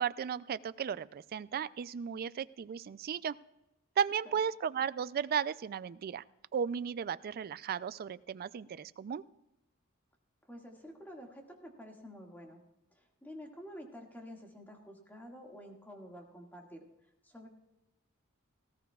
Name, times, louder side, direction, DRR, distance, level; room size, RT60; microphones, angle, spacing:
voice 1, 0.0-3.4 4.0-6.2 6.5-9.2, right 7 dB, 45° right, 17 dB, 0.3 m, -35 dB
voice 2, 10.5-12.6 12.9-16.9 17.2-17.5, equal, 10° left, 0 dB, 1.9 m, -49 dB
18.5 x 15.0 x 2.3 m, 0.93 s
head